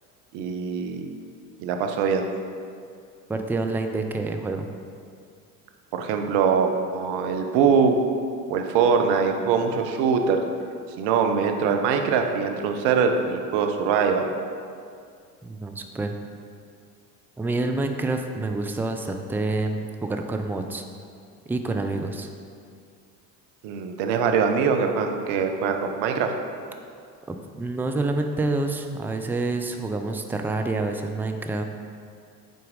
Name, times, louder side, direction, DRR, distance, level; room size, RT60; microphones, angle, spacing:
voice 1, 0.3-1.0 1.6-2.3 5.9-8.0 8.5-10.4 11.0-14.3 23.6-26.3, right 6 dB, 55° right, 5 dB, 1.0 m, -23 dB
voice 2, 3.3-4.7 15.4-16.1 17.4-20.8 21.5-22.3 27.3-31.6, right 2 dB, 5° right, 5 dB, 0.4 m, -27 dB
7.9 x 4.6 x 5.2 m, 2.3 s
hypercardioid pair, 80°, 48 cm